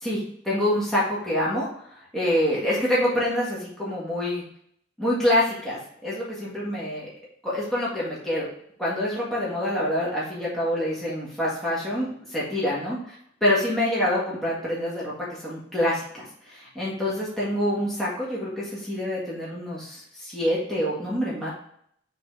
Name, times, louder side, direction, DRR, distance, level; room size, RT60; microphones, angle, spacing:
voice 1, 0.0-4.4 5.0-7.1 7.4-8.5 8.8-21.5, left 1 dB, ahead, -8 dB, 1.7 m, -26 dB
6.0 x 3.5 x 4.8 m, 0.66 s
head